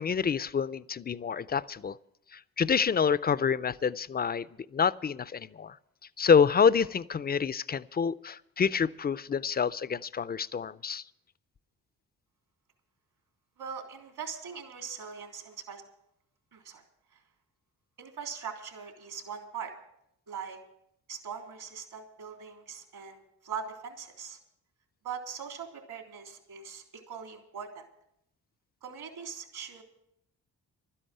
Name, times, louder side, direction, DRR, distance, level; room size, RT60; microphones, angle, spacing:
voice 1, 0.0-2.0 2.3-4.5 4.7-5.8 6.2-11.0, left 6 dB, 25° left, 17 dB, 0.4 m, -27 dB
voice 2, 13.6-15.8 16.5-16.8 18.0-19.7 20.3-20.6 21.1-24.4 25.0-27.8 28.8-29.8, right 6 dB, 70° right, 3 dB, 3.3 m, -41 dB
12.5 x 10.0 x 7.8 m, 0.76 s
cardioid pair, 65°, 39 cm